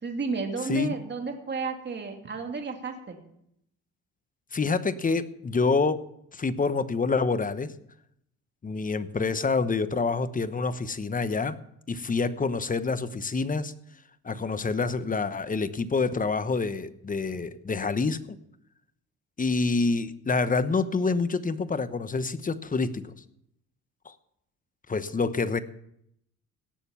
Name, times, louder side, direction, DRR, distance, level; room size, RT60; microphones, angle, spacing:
voice 1, 0.0-3.2, right 4 dB, 35° right, 3 dB, 2.4 m, -32 dB
voice 2, 4.5-6.0 6.3-7.7 8.6-11.6 11.9-13.7 14.2-18.4 19.4-23.1 24.0-24.1 24.9-25.6, left 4 dB, 25° left, 13 dB, 1.0 m, -27 dB
17.5 x 6.9 x 7.1 m, 0.75 s
cardioid pair, 80°, 32 cm